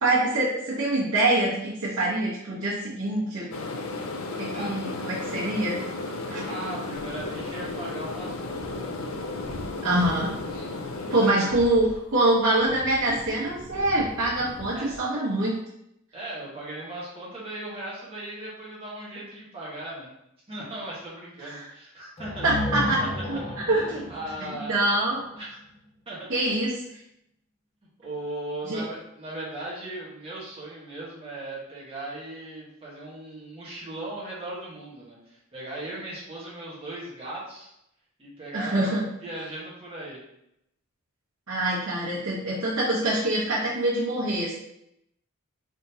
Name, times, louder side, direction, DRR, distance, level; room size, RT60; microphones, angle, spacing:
voice 1, 0.0-3.5 4.4-5.8 6.3-6.4 9.8-10.4 11.1-15.5 21.4-21.7 22.4-23.0 23.3-23.4 23.7-23.8 24.4-25.2 26.3-26.7 28.6-28.8 38.5-39.0 41.5-44.5, right 1 dB, 90° right, -10 dB, 1.1 m, -25 dB
sound 1, 3.5-11.3, left 2 dB, 80° left, 0.5 m, -34 dB
voice 2, 4.5-5.0 6.4-9.0 11.2-11.4 14.7-15.0 16.1-20.1 20.5-22.5 23.0-24.7 25.4-25.6 26.1-26.6 28.0-37.7 38.2-38.9 39.2-40.2, right 1 dB, 25° right, -7 dB, 1.2 m, -38 dB
sound 2, 6.9-15.0, equal, 45° left, 1.4 m, -44 dB
sound 3, 22.2-25.9, left 1 dB, 30° left, 0.5 m, -33 dB
3.7 x 3.6 x 2.8 m, 0.80 s
head